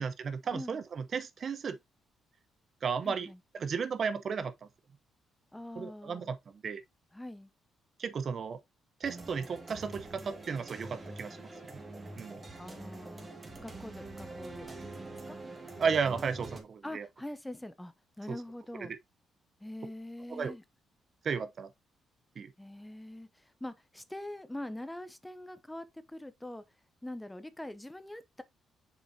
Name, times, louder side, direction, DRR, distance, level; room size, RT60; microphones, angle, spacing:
voice 1, 0.0-1.8 2.8-3.3 3.5-4.7 5.8-6.8 8.0-8.6 9.0-11.5 12.2-12.4 15.8-17.1 18.3-18.4 20.3-20.5 21.2-21.7 22.4-22.5, right 6 dB, 50° right, 0.7 m, -34 dB
voice 2, 3.0-3.4 5.5-6.3 7.1-7.5 12.6-14.8 15.0-15.4 16.8-18.9 19.6-20.6 22.6-26.6 27.0-28.4, left 1 dB, 10° left, 0.7 m, -44 dB
sound 1, 9.0-16.6, right 2 dB, 25° right, 1.9 m, -45 dB
6.6 x 5.3 x 2.7 m
cardioid pair, 90°, 0 cm